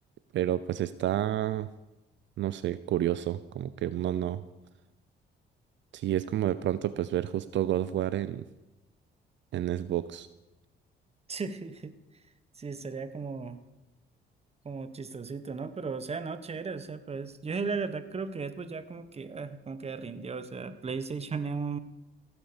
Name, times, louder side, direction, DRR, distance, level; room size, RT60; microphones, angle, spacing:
voice 1, 0.3-1.7 2.4-4.4 5.9-8.4 9.5-10.3, right 12 dB, 70° right, 14 dB, 0.6 m, -30 dB
voice 2, 11.3-11.9 12.6-13.6 14.6-21.8, right 4 dB, 30° right, 11 dB, 1.3 m, -36 dB
16.0 x 9.5 x 7.0 m, 1.0 s
cardioid pair, 90°, 20 cm